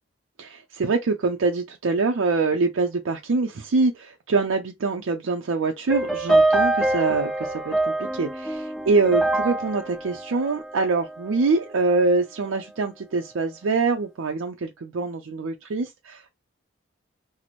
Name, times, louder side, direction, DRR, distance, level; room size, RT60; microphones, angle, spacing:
voice 1, 0.4-7.3 7.7-7.8 8.0-16.3, right 3 dB, 80° right, 0.5 m, -24 dB
sound 1, 5.9-11.2, right 2 dB, ahead, 0.8 m, -24 dB
3.0 x 2.0 x 4.0 m
head